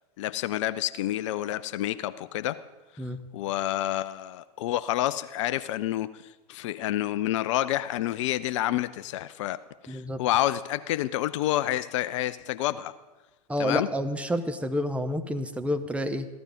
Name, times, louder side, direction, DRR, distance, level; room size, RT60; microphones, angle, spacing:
voice 1, 0.2-2.6 3.3-6.2 6.5-12.9 13.6-13.9, left 14 dB, 50° left, 0.5 m, -29 dB
voice 2, 9.9-10.2 13.5-16.3, equal, 5° right, 0.8 m, -29 dB
15.0 x 12.5 x 5.1 m
figure-of-eight pair, 95°, 20 cm